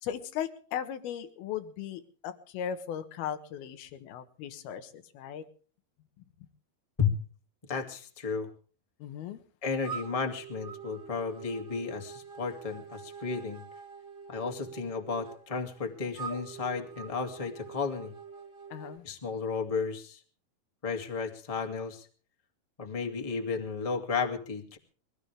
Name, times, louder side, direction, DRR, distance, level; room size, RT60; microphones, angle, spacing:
voice 1, 0.0-5.4 9.0-9.4 18.7-19.0, left 9 dB, 75° left, 10 dB, 3.3 m, -37 dB
voice 2, 7.7-8.5 9.6-13.6 14.3-18.1 19.0-20.2 20.8-22.0 22.8-24.8, left 5 dB, 15° left, 3 dB, 1.6 m, -33 dB
sound 1, 9.8-19.0, right 7 dB, 35° right, 2.6 m, -45 dB
23.0 x 17.0 x 3.4 m, 0.42 s
omnidirectional pair, 4.5 m